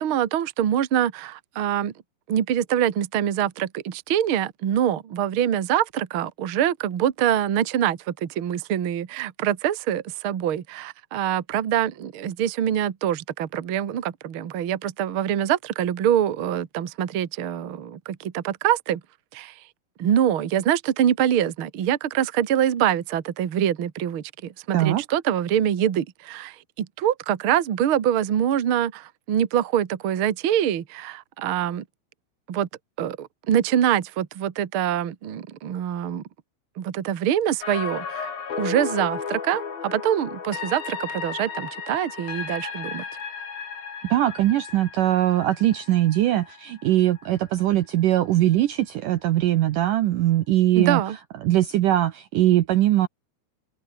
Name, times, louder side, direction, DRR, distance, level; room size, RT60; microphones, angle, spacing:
voice 1, 0.0-1.9 2.3-19.0 19.3-19.5 20.0-31.8 32.5-32.7 33.0-36.2 36.8-38.3 38.6-43.0 50.8-51.2, right 10 dB, 50° right, 1.6 m, -24 dB
sound 1, 37.6-47.6 48.0-48.1, left 6 dB, 60° left, 6.0 m, -34 dB
voice 2, 44.0-51.0 51.4-53.1, right 13 dB, 70° right, 2.1 m, -21 dB
omnidirectional pair, 4.7 m